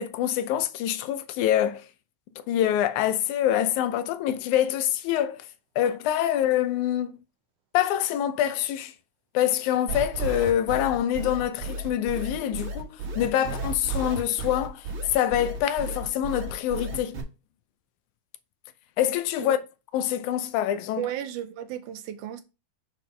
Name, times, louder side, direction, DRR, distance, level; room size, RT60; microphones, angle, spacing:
voice 1, 0.0-1.9 2.5-5.4 5.8-7.1 7.7-8.9 9.3-14.8 15.1-17.2 19.0-19.6 19.9-21.1, left 11 dB, 80° left, 2.1 m, -25 dB
sound 1, 9.9-17.2, right 2 dB, 50° right, 2.0 m, -33 dB
voice 2, 21.0-22.4, right 11 dB, 85° right, 2.3 m, -34 dB
6.0 x 4.4 x 4.9 m
omnidirectional pair, 3.4 m